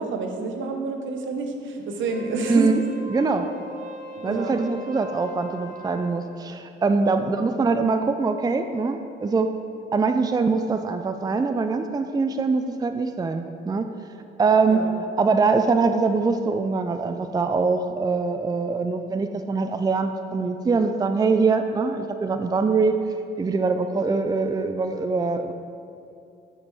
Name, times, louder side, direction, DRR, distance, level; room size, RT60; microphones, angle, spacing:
voice 1, 0.0-2.7 4.2-4.6 7.0-7.1 14.7-14.9, right 4 dB, 75° right, 4 dB, 1.1 m, -29 dB
Wind instrument woodwind instrument, 2.0-6.2, right 1 dB, 40° right, 1.3 m, -40 dB
voice 2, 2.5-2.8 3.1-3.5 4.2-9.5 9.9-13.9 14.4-14.8 15.2-22.9 23.4-25.5, right 4 dB, 20° right, 8 dB, 0.4 m, -23 dB
8.8 x 6.6 x 4.8 m, 2.6 s
cardioid pair, 90°, 20 cm